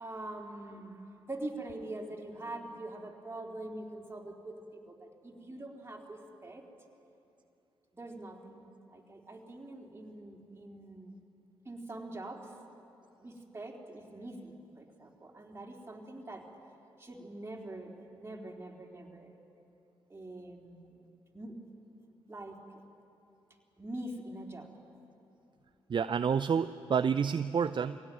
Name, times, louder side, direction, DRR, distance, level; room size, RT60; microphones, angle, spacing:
voice 1, 0.0-6.6 7.9-11.2 11.7-12.5 13.2-16.5 17.0-19.3 20.1-21.0 21.3-21.6 22.3-22.6 23.8-24.7, right 1 dB, 20° right, 0 dB, 3.8 m, -44 dB
voice 2, 25.9-28.0, right 6 dB, 45° right, 12 dB, 0.6 m, -29 dB
22.5 x 17.0 x 9.3 m, 2.8 s
hypercardioid pair, 45°, 11 cm